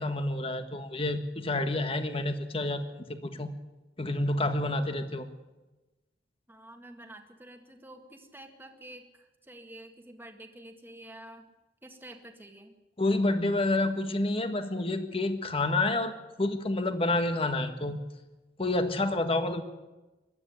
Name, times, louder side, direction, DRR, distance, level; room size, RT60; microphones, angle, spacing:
voice 1, 0.0-3.5 4.0-5.3 13.0-16.1 16.4-18.0 18.6-19.6, left 2 dB, 35° left, 8 dB, 1.7 m, -29 dB
voice 2, 6.5-9.0 9.4-11.4 11.8-12.7, right 1 dB, 10° right, 3 dB, 1.9 m, -48 dB
21.0 x 12.5 x 9.9 m, 1.1 s
head